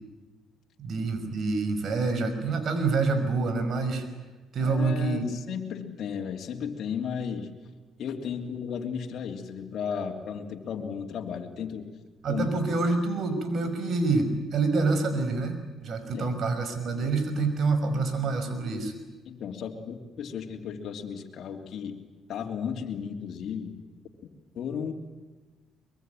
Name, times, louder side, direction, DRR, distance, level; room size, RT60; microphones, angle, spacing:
voice 1, 0.8-4.1 4.5-5.3 12.2-18.9, right 3 dB, 60° right, 9 dB, 5.3 m, -27 dB
voice 2, 4.6-7.5 8.0-11.9 12.3-12.5 16.1-16.3 19.2-22.0 22.3-23.7 24.5-24.9, left 7 dB, 65° left, 2 dB, 3.1 m, -34 dB
23.5 x 23.0 x 9.2 m, 1.3 s
supercardioid pair, 70°, 0 cm